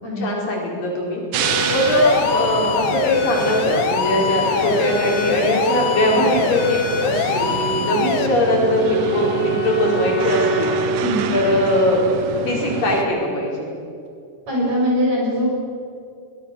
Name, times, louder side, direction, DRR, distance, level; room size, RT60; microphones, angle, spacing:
voice 1, 0.2-1.2 1.7-10.8 11.3-12.0 12.3-13.7, left 1 dB, 70° left, -2 dB, 6.3 m, -21 dB
sound 1, 1.3-13.0, right 8 dB, 75° right, 2.6 m, -28 dB
sound 2, 1.4-8.3, left 7 dB, 90° left, 3.0 m, -23 dB
Wind instrument woodwind instrument, 7.9-12.9, right 1 dB, 50° left, 3.8 m, -27 dB
voice 2, 11.0-11.3 14.5-15.5, equal, 50° right, -4 dB, 8.6 m, -21 dB
23.5 x 19.5 x 7.0 m, 2.4 s
omnidirectional pair, 4.0 m